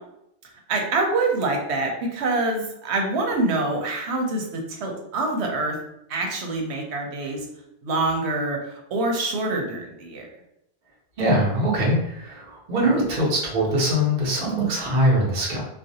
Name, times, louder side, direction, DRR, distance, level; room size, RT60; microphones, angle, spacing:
voice 1, 0.7-5.7 6.1-7.5 7.8-10.3, right 2 dB, 90° right, 2 dB, 0.9 m, -25 dB
voice 2, 11.2-15.6, equal, 50° right, -4 dB, 0.9 m, -22 dB
2.4 x 2.0 x 2.7 m, 0.81 s
omnidirectional pair, 1.1 m